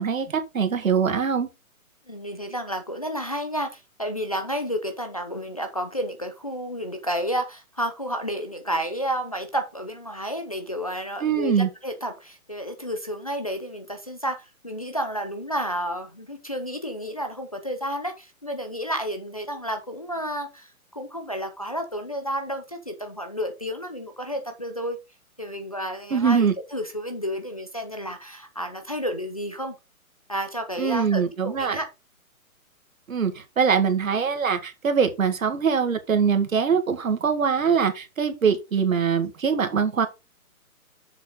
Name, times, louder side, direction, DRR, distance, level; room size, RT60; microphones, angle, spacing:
voice 1, 0.0-1.5 11.2-11.7 26.1-26.5 30.8-31.8 33.1-40.1, right 6 dB, 65° right, 1.9 m, -23 dB
voice 2, 2.1-25.0 25.4-29.8 30.3-31.9, equal, 25° left, 0.6 m, -31 dB
7.1 x 6.1 x 3.8 m
hypercardioid pair, 180°, 44 cm